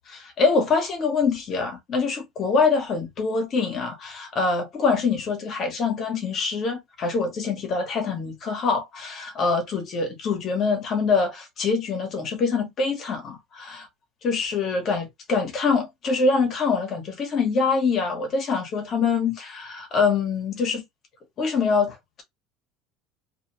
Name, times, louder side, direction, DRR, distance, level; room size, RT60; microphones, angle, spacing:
voice 1, 0.0-13.9 14.2-20.8 21.4-22.2, left 4 dB, 45° left, 1.2 m, -24 dB
2.5 x 2.3 x 3.0 m
supercardioid pair, 95°, 0 cm